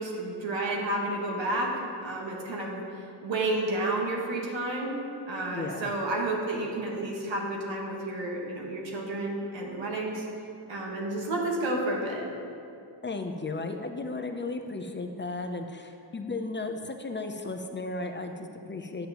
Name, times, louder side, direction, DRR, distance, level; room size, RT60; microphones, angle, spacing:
voice 1, 0.0-1.7 2.0-2.8 3.2-5.0 5.3-10.2 10.7-12.2, right 2 dB, 85° right, -2 dB, 1.5 m, -31 dB
voice 2, 5.5-5.9 13.0-19.1, left 3 dB, 25° left, 5 dB, 0.5 m, -35 dB
10.0 x 7.1 x 2.9 m, 2.5 s
cardioid pair, 80°, 44 cm